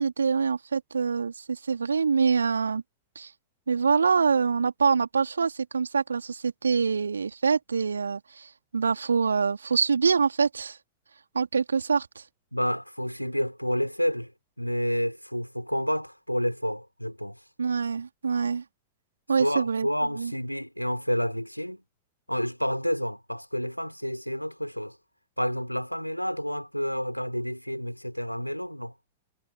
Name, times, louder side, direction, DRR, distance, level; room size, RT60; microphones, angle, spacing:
voice 1, 0.0-2.8 3.2-3.3 3.7-10.8 11.3-12.2 17.6-18.6 19.3-19.9 20.2-20.3, right 5 dB, 75° right, 3.4 m, -25 dB
voice 2, 12.5-14.3 14.6-17.4 19.4-21.8 22.3-25.0 25.4-28.9, equal, 90° left, 5.5 m, -29 dB
figure-of-eight pair, 90°, 0 cm